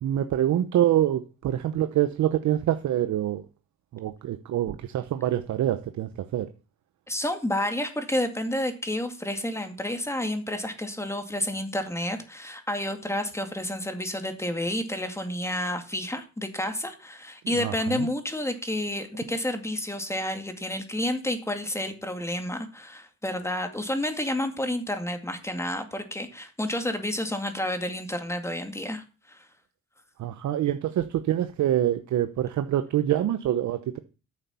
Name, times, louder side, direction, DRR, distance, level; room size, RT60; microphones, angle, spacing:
voice 1, 0.0-3.4 3.9-6.5 17.6-18.1 30.2-34.0, right 12 dB, 70° right, 0.9 m, -25 dB
voice 2, 7.1-29.5, left 1 dB, 10° left, 2.2 m, -30 dB
9.9 x 6.9 x 7.0 m
cardioid pair, 90°, 30 cm